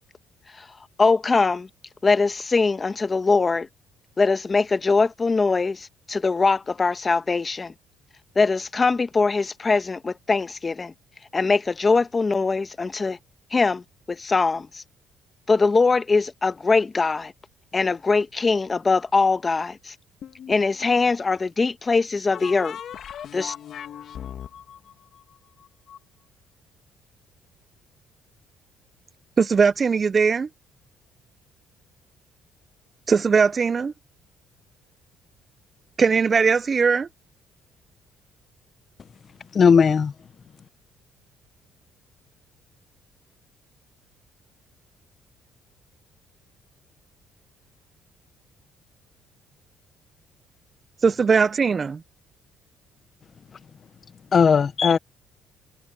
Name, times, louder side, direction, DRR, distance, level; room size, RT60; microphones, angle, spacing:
voice 1, 1.0-1.7 2.0-3.7 4.2-7.7 8.3-10.9 11.3-13.2 13.5-13.8 14.1-14.8 15.5-17.3 17.7-19.9 20.5-22.8 23.3-23.5, left 4 dB, 25° left, 1.2 m, -22 dB
sound 1, 20.2-21.1 22.3-26.0, left 9 dB, 60° left, 2.1 m, -38 dB
voice 2, 29.4-30.5 33.1-33.9 36.0-37.1 51.0-52.0, right 5 dB, 35° right, 0.6 m, -19 dB
voice 3, 39.5-40.1 54.3-55.0, left 6 dB, 40° left, 0.7 m, -17 dB
cardioid pair, 95°, 0 cm